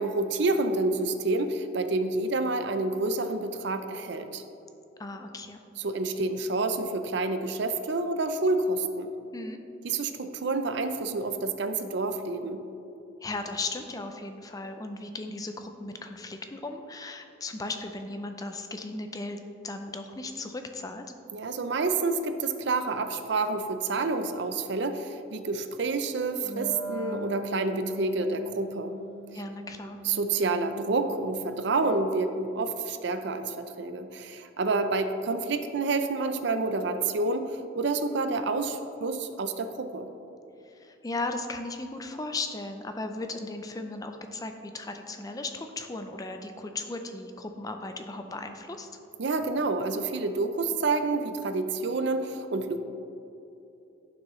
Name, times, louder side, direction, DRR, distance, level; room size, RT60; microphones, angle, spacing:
voice 1, 0.0-4.4 5.8-9.1 9.8-12.6 21.3-28.9 30.0-40.1 49.2-52.8, right 3 dB, 55° right, 8 dB, 0.5 m, -28 dB
voice 2, 5.0-5.6 9.3-9.6 13.2-19.4 19.6-21.1 29.3-30.0 40.6-48.9, left 2 dB, 15° left, 6 dB, 0.4 m, -36 dB
Wind instrument woodwind instrument, 26.4-31.5, right 2 dB, 65° left, 1.5 m, -41 dB
11.0 x 6.2 x 3.1 m, 2.9 s
head